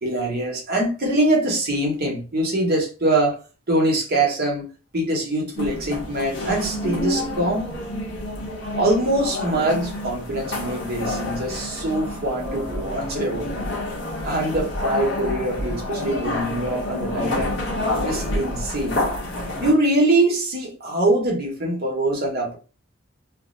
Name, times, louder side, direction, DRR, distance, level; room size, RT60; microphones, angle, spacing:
voice 1, 0.0-3.4 3.7-4.7 4.9-7.7 8.8-13.6 14.2-17.6 18.0-19.0 19.6-22.6, right 1 dB, 50° right, 0.9 m, -23 dB
sound 1, 5.6-19.7, left 1 dB, 65° left, 0.9 m, -28 dB
2.5 x 2.0 x 3.7 m
head